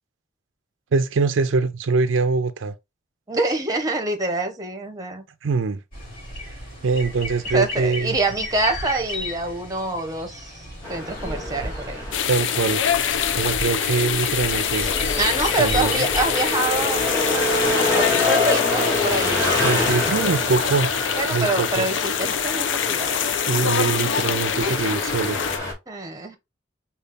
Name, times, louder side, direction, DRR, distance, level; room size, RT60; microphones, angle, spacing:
voice 1, 0.9-2.7 5.4-5.8 6.8-8.2 12.3-12.8 13.4-14.9 15.6-16.1 19.6-20.9 21.3-21.9 23.5-25.4, right 4 dB, 80° right, 0.5 m, -23 dB
voice 2, 3.3-5.2 7.5-12.2 15.2-17.6 17.9-20.1 21.2-23.3 24.1-24.2 24.5-24.8 25.9-26.4, right 2 dB, 20° right, 0.8 m, -26 dB
sound 1, 5.9-17.7, left 1 dB, 50° left, 2.4 m, -34 dB
sound 2, 10.8-25.7, left 2 dB, 20° left, 2.4 m, -27 dB
sound 3, 12.1-25.6, left 8 dB, 70° left, 0.4 m, -25 dB
5.2 x 2.4 x 3.4 m
head